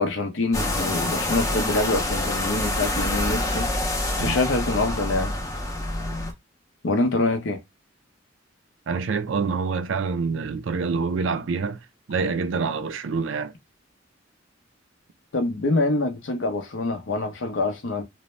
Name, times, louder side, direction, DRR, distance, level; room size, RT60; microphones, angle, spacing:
voice 1, 0.0-3.7 4.2-5.3 6.8-7.6 15.3-18.0, left 2 dB, 70° left, 0.6 m, -25 dB
sound 1, 0.5-6.3, left 1 dB, 15° left, 0.5 m, -26 dB
voice 2, 8.9-11.8 12.1-13.5, right 5 dB, 70° right, 0.4 m, -26 dB
2.5 x 2.0 x 3.1 m
head